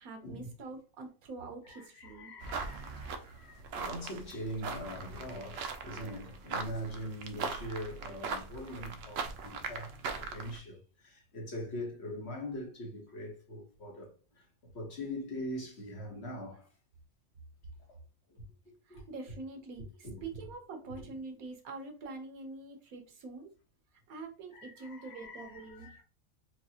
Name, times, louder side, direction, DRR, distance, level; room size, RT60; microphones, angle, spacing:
voice 1, 0.0-2.3 18.8-23.5 24.1-25.9, right 3 dB, 85° right, 1.4 m, -45 dB
voice 2, 1.6-14.5 14.7-16.7 17.9-18.0 18.3-19.0 20.0-20.2 20.9-21.1 24.5-26.0, equal, 50° left, 1.5 m, -42 dB
sound 1, 2.4-10.6, right 4 dB, 65° right, 0.7 m, -40 dB
4.6 x 2.4 x 2.8 m
omnidirectional pair, 1.5 m